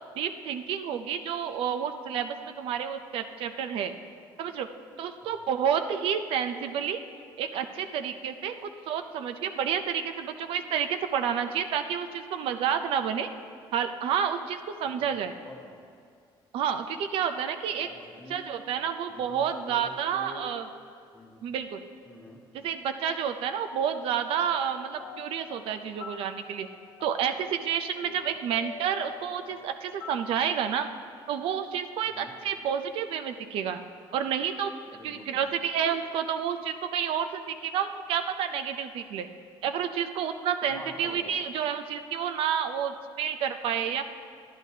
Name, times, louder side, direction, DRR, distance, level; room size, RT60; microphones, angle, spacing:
voice 1, 0.2-3.9 4.4-4.7 5.0-7.0 7.4-13.3 13.7-15.3 16.5-17.9 18.3-20.7 21.4-21.8 22.5-26.7 27.0-30.9 31.3-33.8 34.1-39.3 39.6-44.1, right 8 dB, 70° right, 8 dB, 0.4 m, -30 dB
voice 2, 15.4-15.8 17.7-18.5 19.1-20.4 21.1-21.5 22.0-22.4 28.1-28.2 32.1-32.3 34.9-35.4 40.7-41.4, left 1 dB, 15° left, 0 dB, 1.1 m, -47 dB
sound 1, 24.5-30.4, left 6 dB, 60° left, 0.7 m, -46 dB
11.0 x 11.0 x 2.8 m, 2.2 s
cardioid pair, 150°, 10 cm